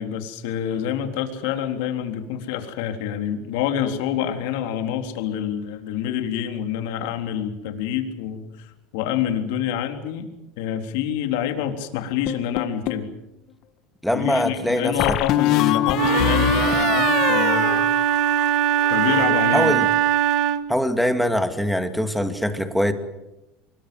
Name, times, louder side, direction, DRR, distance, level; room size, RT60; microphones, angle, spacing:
voice 1, 0.0-10.3 10.6-13.1 14.1-17.9 18.9-19.7, left 9 dB, 75° left, 5 dB, 3.6 m, -27 dB
sound 1, 12.3-13.1 15.0-18.5 18.8-19.3, left 13 dB, 50° left, 1.5 m, -24 dB
voice 2, 14.0-15.2 19.5-19.9 20.7-22.9, equal, ahead, 7 dB, 2.3 m, -22 dB
Wind instrument woodwind instrument, 15.9-20.8, right 10 dB, 55° right, 1.5 m, -21 dB
24.5 x 22.0 x 7.8 m, 0.92 s
supercardioid pair, 135°, 0 cm